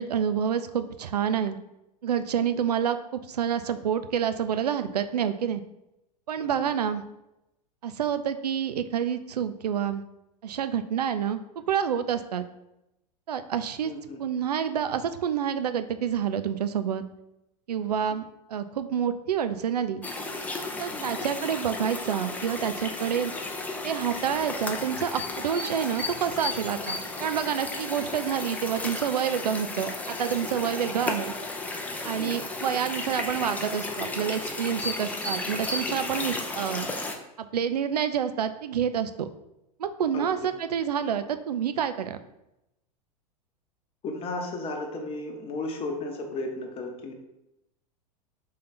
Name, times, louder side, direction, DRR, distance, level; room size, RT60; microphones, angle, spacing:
voice 1, 0.0-1.6 2.0-5.6 6.3-7.0 7.8-10.0 10.4-11.4 11.7-12.5 13.3-13.9 14.2-17.0 17.7-20.0 20.8-23.3 23.8-31.3 32.0-36.9 37.4-39.3 39.8-42.2, right 8 dB, 75° right, 10 dB, 0.4 m, -28 dB
voice 2, 13.8-14.2 20.9-21.2 32.1-32.5 40.1-40.5 44.0-47.1, left 2 dB, 30° left, 3 dB, 0.9 m, -35 dB
sound 1, 20.0-37.2, left 2 dB, 5° left, 0.5 m, -34 dB
3.9 x 3.3 x 4.1 m, 0.89 s
figure-of-eight pair, 90°, 20 cm